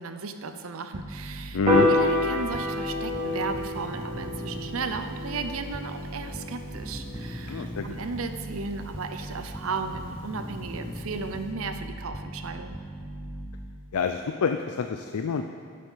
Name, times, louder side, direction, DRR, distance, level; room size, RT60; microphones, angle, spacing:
voice 1, 0.0-1.6 1.9-12.8, right 4 dB, 70° right, 8 dB, 0.7 m, -35 dB
sound 1, 0.9-13.8, equal, ahead, 0.7 m, -38 dB
voice 2, 1.5-1.9 7.5-7.9 13.9-15.4, left 5 dB, 85° left, 6 dB, 0.4 m, -27 dB
Piano, 1.7-8.0, left 1 dB, 25° right, 2.7 m, -29 dB
10.0 x 7.6 x 5.6 m, 2.1 s
head